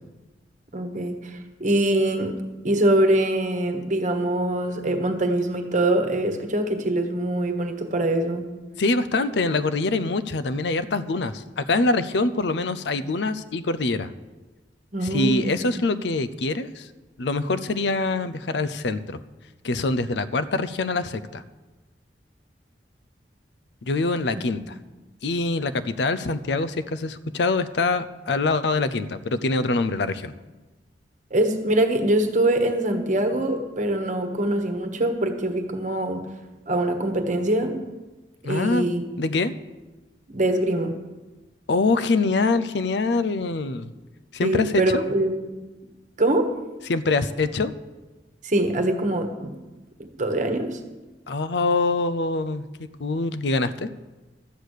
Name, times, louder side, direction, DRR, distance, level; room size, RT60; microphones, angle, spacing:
voice 1, 0.7-2.4 2.6-8.5 14.9-15.5 31.3-36.2 36.7-37.8 38.4-39.1 40.3-41.0 44.4-45.7 46.2-46.5 48.4-49.5 50.0-50.8, right 1 dB, 45° right, 6 dB, 1.3 m, -23 dB
voice 2, 8.8-14.1 15.0-16.9 17.2-19.2 19.6-21.4 23.8-24.7 25.2-30.3 38.4-38.9 39.2-39.5 41.7-43.9 44.3-45.0 46.9-47.7 51.3-53.9, left 3 dB, 75° left, 13 dB, 0.6 m, -24 dB
12.5 x 8.2 x 6.5 m, 1.2 s
head